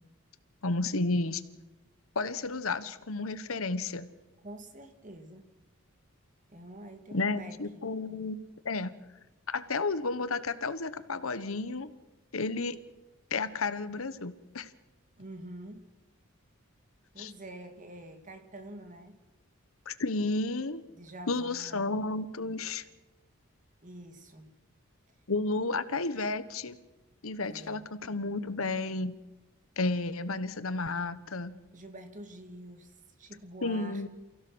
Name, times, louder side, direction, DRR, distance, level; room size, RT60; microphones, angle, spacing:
voice 1, 0.6-1.4 2.1-4.1 7.1-8.4 8.6-8.9 9.5-11.9 12.3-12.8 13.3-14.7 17.2-17.3 19.9-20.8 21.3-22.8 25.3-26.8 27.2-29.2 29.8-31.6 33.6-34.1, left 3 dB, 75° left, 14 dB, 1.1 m, -32 dB
voice 2, 4.4-5.5 6.5-7.8 15.2-15.8 17.1-19.2 20.9-21.9 23.8-24.5 27.4-27.8 31.7-34.1, right 1 dB, 35° right, 6 dB, 2.3 m, -47 dB
29.0 x 16.0 x 6.3 m, 1.1 s
head